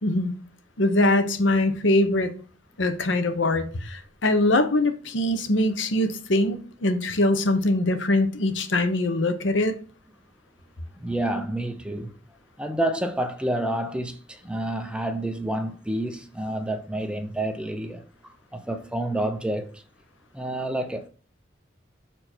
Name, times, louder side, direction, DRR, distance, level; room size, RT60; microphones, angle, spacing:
voice 1, 0.0-0.3 0.8-2.3 2.8-9.8, left 1 dB, 75° left, 0.9 m, -22 dB
voice 2, 11.0-12.1 12.6-19.8 20.3-21.1, right 1 dB, 5° right, 0.6 m, -29 dB
6.5 x 4.5 x 4.4 m
head